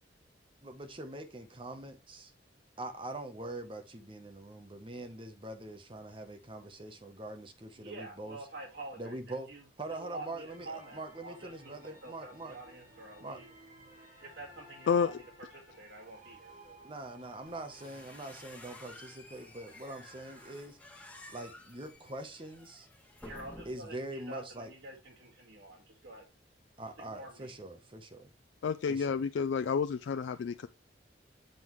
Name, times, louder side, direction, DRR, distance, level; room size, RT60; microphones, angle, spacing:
voice 1, 0.6-2.3 2.8-8.4 9.0-9.5 9.8-12.6 13.2-13.4 16.8-20.8 21.3-22.9 23.6-24.7 26.8-28.3 28.9-29.2, right 2 dB, 30° right, 0.9 m, -43 dB
voice 2, 7.8-9.2 9.5-9.6 9.9-13.5 14.2-15.1 15.5-16.8 23.2-26.2 27.1-27.5, right 2 dB, 80° right, 2.1 m, -47 dB
sound 1, 10.5-20.6, equal, 45° right, 3.6 m, -57 dB
voice 3, 14.9-15.2 28.6-30.7, left 6 dB, 75° left, 0.3 m, -30 dB
sound 2, 17.5-24.0, left 1 dB, 10° left, 1.4 m, -53 dB
7.7 x 5.5 x 3.1 m
head